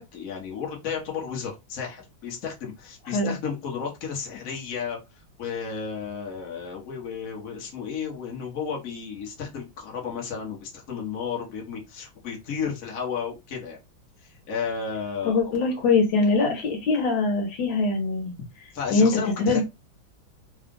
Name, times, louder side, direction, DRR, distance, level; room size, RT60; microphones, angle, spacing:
voice 1, 0.0-5.0 5.4-13.8 14.2-15.8 18.7-19.6, left 6 dB, 50° left, -1 dB, 1.4 m, -33 dB
voice 2, 15.2-18.3 18.9-19.6, left 3 dB, 70° left, 2 dB, 1.7 m, -22 dB
3.8 x 2.4 x 3.6 m, 0.23 s
omnidirectional pair, 2.2 m